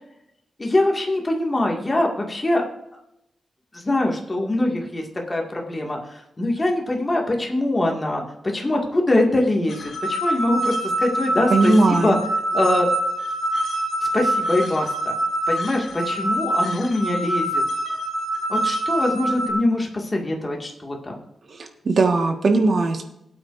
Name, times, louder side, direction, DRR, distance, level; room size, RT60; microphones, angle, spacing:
voice 1, 0.6-2.6 3.7-6.0 6.4-8.2 8.5-9.8 10.1-12.2 12.5-12.9 14.1-15.1 15.5-17.6 18.5-21.2, left 1 dB, 20° left, 0 dB, 2.0 m, -23 dB
sound 1, 9.7-19.5, right 1 dB, 65° left, 2.0 m, -25 dB
voice 2, 11.5-12.2 21.5-23.0, right 3 dB, 50° right, 4 dB, 1.6 m, -19 dB
18.5 x 8.7 x 2.6 m, 0.83 s
wide cardioid pair, 150°, 0 cm